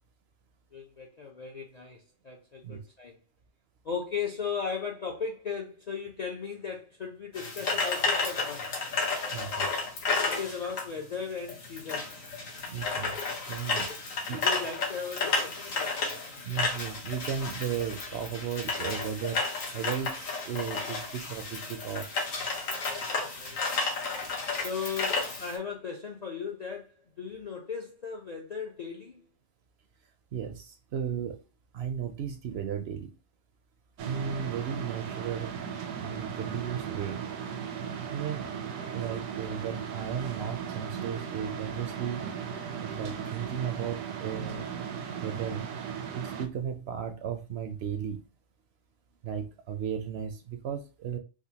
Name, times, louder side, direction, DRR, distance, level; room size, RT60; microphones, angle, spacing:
voice 1, 0.7-3.2 3.8-8.7 10.3-12.3 13.9-14.0 14.3-16.0 22.8-23.8 24.6-29.2 39.0-39.2, left 6 dB, 50° left, 0.5 m, -37 dB
sound 1, 7.3-25.6, left 4 dB, 85° left, 1.5 m, -32 dB
voice 2, 9.3-9.7 12.7-13.1 13.5-13.9 14.3-14.5 16.4-19.5 19.7-22.1 30.3-31.4 31.7-33.1 34.0-35.6 36.0-37.2 38.1-38.5 38.9-42.3 42.8-44.6 45.2-45.6 46.1-48.2 49.2-51.2, right 8 dB, 65° right, 0.7 m, -35 dB
sound 2, 34.0-46.5, right 7 dB, 85° right, 1.0 m, -37 dB
4.9 x 2.0 x 2.8 m
omnidirectional pair, 1.3 m